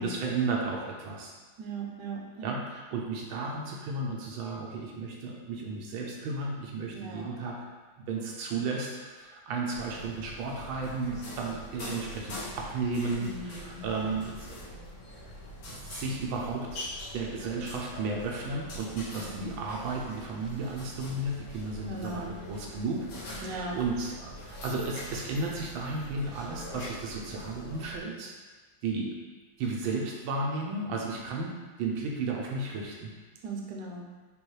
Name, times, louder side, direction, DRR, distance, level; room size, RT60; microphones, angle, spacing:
voice 1, 0.0-1.3 2.4-7.6 8.0-14.8 15.7-28.3 28.8-29.1 29.6-31.5 31.8-33.1, right 3 dB, 80° right, -1 dB, 1.4 m, -34 dB
voice 2, 1.6-2.5 6.9-7.4 13.2-13.9 19.3-19.7 21.9-22.5 23.4-23.8 33.4-34.1, right 3 dB, 65° right, -1 dB, 1.1 m, -39 dB
sound 1, 9.7-28.0, left 1 dB, 70° left, 1.8 m, -44 dB
5.3 x 3.0 x 3.1 m, 1.3 s
omnidirectional pair, 2.2 m